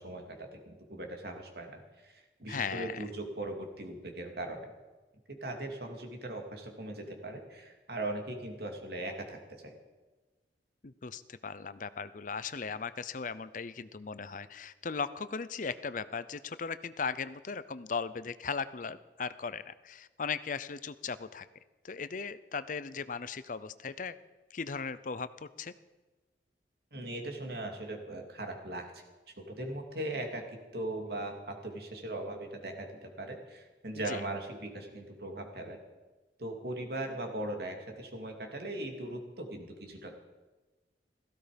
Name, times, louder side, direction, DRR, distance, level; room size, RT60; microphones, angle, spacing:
voice 1, 0.0-4.7 5.3-9.8 26.9-29.0 29.4-35.8 36.4-40.2, right 1 dB, 60° right, 4 dB, 2.8 m, -39 dB
voice 2, 2.5-3.0 10.8-21.5 21.8-24.1 24.5-25.7 34.0-34.2, left 5 dB, 50° left, 14 dB, 0.6 m, -37 dB
17.0 x 15.5 x 5.2 m, 1.2 s
head